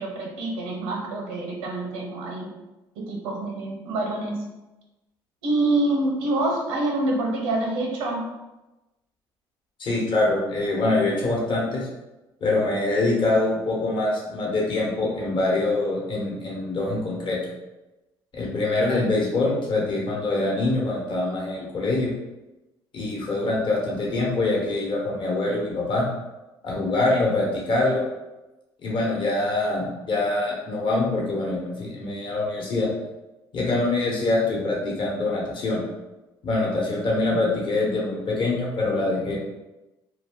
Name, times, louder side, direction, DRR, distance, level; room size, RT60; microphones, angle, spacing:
voice 1, 0.0-2.5 3.0-4.4 5.4-8.2, right 2 dB, 85° right, 0 dB, 0.6 m, -26 dB
voice 2, 9.8-11.9 12.4-17.4 18.3-22.1 22.9-26.0 26.6-28.0 28.8-32.9 33.5-35.8 36.4-39.4, left 2 dB, 50° left, -3 dB, 1.0 m, -24 dB
2.4 x 2.2 x 3.6 m, 1.0 s
supercardioid pair, 70°, 11 cm